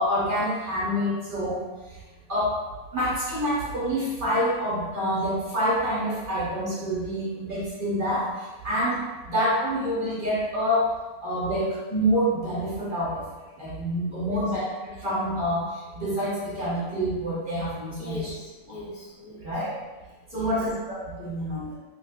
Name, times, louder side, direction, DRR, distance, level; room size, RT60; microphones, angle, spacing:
voice 1, 0.0-1.6 2.3-2.6 2.9-8.3 8.6-9.0 9.3-10.9 11.2-13.3 13.6-18.2 19.4-19.7 20.3-21.8, equal, 50° right, -7 dB, 0.7 m, -27 dB
voice 2, 14.2-14.5 18.0-19.6 20.3-20.6, left 1 dB, 85° left, -5 dB, 1.4 m, -39 dB
3.0 x 2.8 x 2.8 m, 1.2 s
omnidirectional pair, 1.5 m